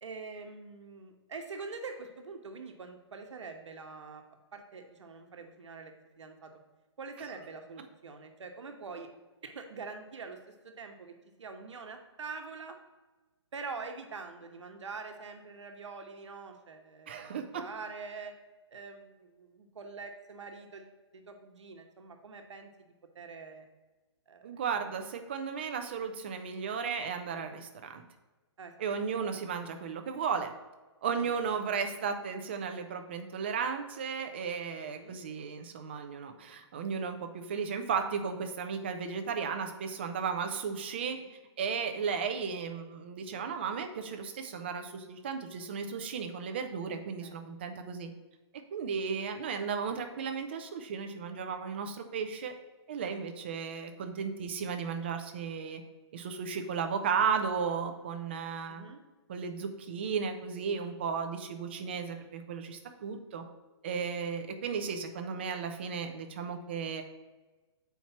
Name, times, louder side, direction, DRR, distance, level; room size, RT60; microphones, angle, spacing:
voice 1, 0.0-4.2 4.5-5.9 6.2-6.5 7.0-9.1 9.4-10.4 10.6-11.1 11.4-12.8 13.5-18.3 18.7-23.7 24.3-24.5 24.8-25.0 28.6-28.7 31.2-31.4 34.8-35.2 41.2-41.4 47.2-47.4 58.7-59.0, right 4 dB, 85° right, 5 dB, 1.0 m, -44 dB
voice 2, 17.1-17.6 24.4-28.0 28.8-30.5 31.0-41.2 41.6-48.1 48.7-52.5 52.9-55.8 56.1-58.8 59.3-63.4 63.8-67.0, right 6 dB, 25° right, 6 dB, 0.4 m, -34 dB
6.9 x 4.5 x 4.2 m, 1.2 s
hypercardioid pair, 175°, 15 cm